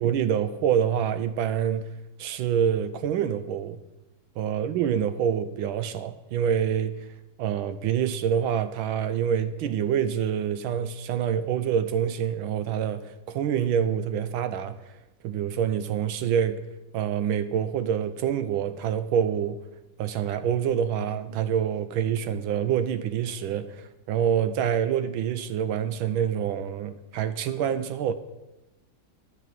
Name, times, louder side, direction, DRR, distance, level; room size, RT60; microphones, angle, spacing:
voice 1, 0.0-1.9 2.2-3.8 4.4-7.0 7.4-14.8 15.2-16.6 16.9-19.6 20.0-28.1, right 8 dB, 85° right, 1.5 m, -26 dB
13.0 x 4.6 x 7.7 m
omnidirectional pair, 2.2 m